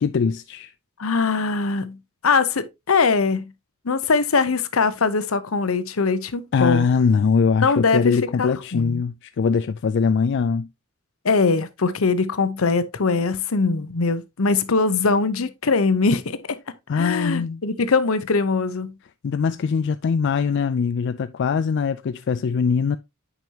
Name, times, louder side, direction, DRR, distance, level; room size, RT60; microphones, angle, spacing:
voice 1, 0.0-0.7 6.5-10.7 16.9-17.6 19.2-23.0, left 5 dB, 55° left, 0.3 m, -22 dB
voice 2, 1.0-2.0 2.2-3.5 3.8-6.8 7.6-9.0 11.2-16.6 16.9-18.9, left 4 dB, 80° left, 0.8 m, -22 dB
9.2 x 5.2 x 2.8 m
head